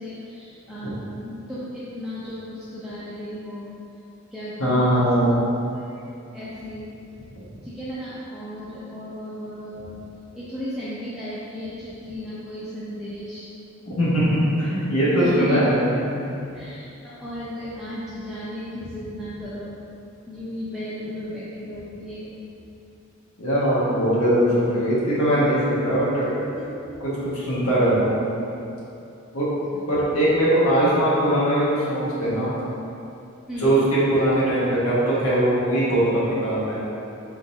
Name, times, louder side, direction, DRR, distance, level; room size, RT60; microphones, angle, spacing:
voice 1, 0.0-3.7 4.3-5.4 5.7-6.0 6.3-6.9 7.2-10.0 10.3-13.5 15.1-15.7 16.5-19.8 20.3-22.4 29.7-29.9 33.5-33.8, left 1 dB, 5° right, -11 dB, 0.5 m, -34 dB
voice 2, 4.6-5.4 13.9-16.0 23.4-26.4 27.0-28.3 29.3-29.4 29.9-32.5 33.6-36.8, right 1 dB, 80° left, -8 dB, 1.3 m, -21 dB
4.4 x 3.8 x 2.6 m, 2.7 s
head